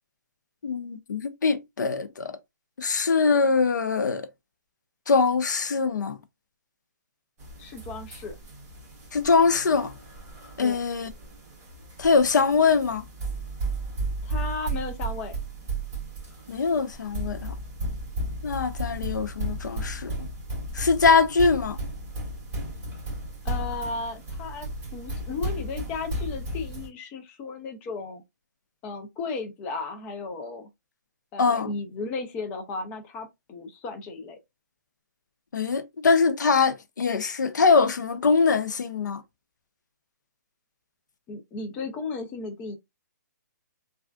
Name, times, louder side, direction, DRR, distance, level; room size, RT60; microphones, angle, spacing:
voice 1, 0.6-2.4 2.8-4.3 5.1-6.2 9.1-9.9 10.6-11.1 12.0-13.0 16.5-17.5 18.4-20.1 20.7-21.8 31.4-31.7 35.5-39.2, left 4 dB, 80° left, 0.7 m, -22 dB
sound 1, 7.4-26.9, right 1 dB, 15° right, 1.8 m, -34 dB
voice 2, 7.6-8.4 10.6-10.8 14.2-15.4 23.4-28.2 28.8-30.7 31.3-34.4 41.3-42.8, left 3 dB, 15° left, 0.4 m, -35 dB
3.4 x 2.4 x 2.3 m
hypercardioid pair, 160°, 10 cm